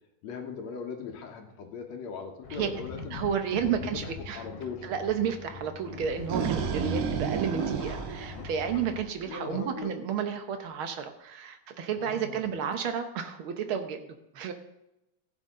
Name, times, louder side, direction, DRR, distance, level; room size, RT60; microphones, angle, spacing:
voice 1, 0.2-3.2 3.6-4.9 9.2-9.9 12.0-12.5, left 5 dB, 65° left, 4 dB, 2.3 m, -39 dB
sound 1, 2.4-9.0, left 5 dB, 80° left, 2.6 m, -43 dB
voice 2, 3.1-4.4 4.8-14.5, right 7 dB, 70° right, 7 dB, 1.2 m, -32 dB
sound 2, 6.0-9.2, right 6 dB, 90° right, 2.7 m, -31 dB
15.5 x 8.2 x 3.7 m, 0.89 s
omnidirectional pair, 3.6 m